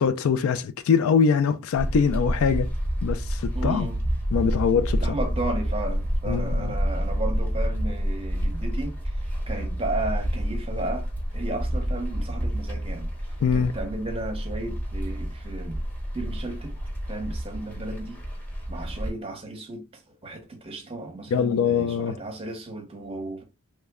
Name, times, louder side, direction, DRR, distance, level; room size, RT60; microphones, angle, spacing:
voice 1, 0.0-2.7 3.0-3.9 4.3-5.0 6.3-6.7 13.4-13.7 21.3-22.2, left 6 dB, 65° left, 0.3 m, -23 dB
sound 1, 1.7-19.1, equal, 5° left, 0.9 m, -29 dB
voice 2, 3.5-4.0 5.0-11.1 11.3-13.1 13.5-15.8 16.1-16.7 17.1-18.2 18.7-23.4, right 2 dB, 25° right, 0.7 m, -34 dB
3.2 x 2.1 x 3.5 m
head